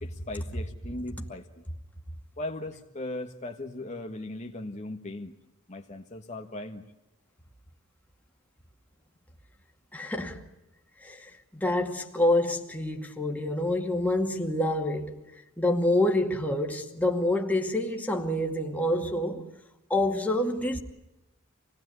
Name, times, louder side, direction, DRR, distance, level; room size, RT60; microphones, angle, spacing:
voice 1, 0.0-1.6 2.4-5.3 5.7-6.8, left 2 dB, 35° left, 1.5 m, -38 dB
voice 2, 9.9-10.4 11.0-11.3 11.5-15.2 15.6-19.4 19.9-20.8, left 1 dB, 10° left, 2.3 m, -27 dB
27.5 x 19.0 x 9.6 m
head